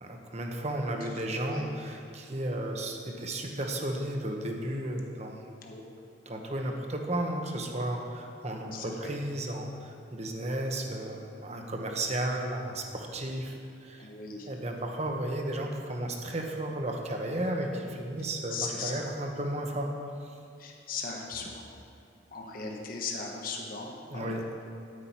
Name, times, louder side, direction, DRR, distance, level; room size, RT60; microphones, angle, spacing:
voice 1, 0.0-5.4 6.3-14.1 14.5-19.9 20.2-20.4 24.1-24.4, right 1 dB, 35° right, 2 dB, 1.0 m, -34 dB
voice 2, 8.7-9.1 14.0-14.5 18.5-19.0 20.6-21.6 22.3-24.4, left 4 dB, 45° left, 0 dB, 1.2 m, -38 dB
9.9 x 9.7 x 4.4 m, 2.5 s
head